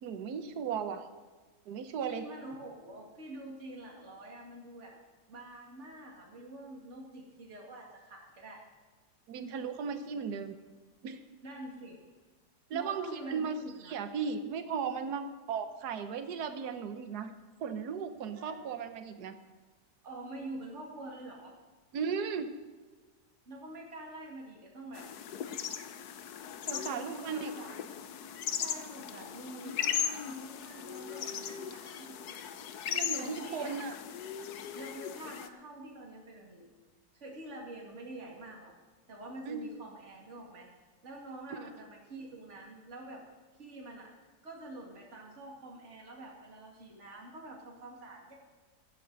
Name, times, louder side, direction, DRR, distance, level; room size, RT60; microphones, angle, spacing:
voice 1, 0.0-1.1 1.7-2.3 9.3-10.6 11.0-11.2 12.7-13.5 13.8-17.3 17.6-19.3 21.9-22.5 26.6-27.5 32.9-33.9 39.5-39.7 41.5-41.7, right 6 dB, 75° right, 9 dB, 1.5 m, -36 dB
voice 2, 2.0-5.0 5.3-8.6 10.2-10.4 11.4-12.0 12.7-14.0 18.3-18.6 20.0-21.5 23.5-25.1 26.7-28.0 28.6-29.9 30.2-32.2 32.9-33.8 34.7-36.7 37.1-38.7 39.1-40.7 41.0-43.2 43.6-48.3, right 1 dB, 45° right, -1 dB, 2.6 m, -46 dB
sound 1, 24.9-35.5, left 8 dB, 75° left, 1.3 m, -38 dB
16.0 x 13.0 x 4.0 m, 1.4 s
omnidirectional pair, 1.7 m